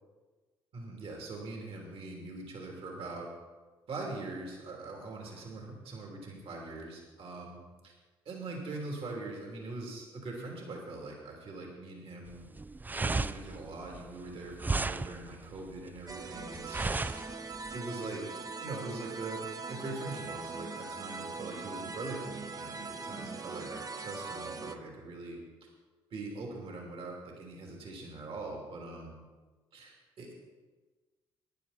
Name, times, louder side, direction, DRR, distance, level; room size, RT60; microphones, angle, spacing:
voice 1, 0.7-3.3 3.9-7.9 8.2-12.5 13.0-17.0 17.7-25.4 26.1-29.1 29.7-30.3, right 2 dB, 55° right, 0 dB, 3.1 m, -42 dB
sound 1, 12.3-17.8, right 3 dB, 15° right, 0.4 m, -35 dB
sound 2, 16.1-24.8, right 4 dB, 35° right, 1.0 m, -41 dB
14.0 x 10.0 x 4.2 m, 1.3 s
hypercardioid pair, 50°, 11 cm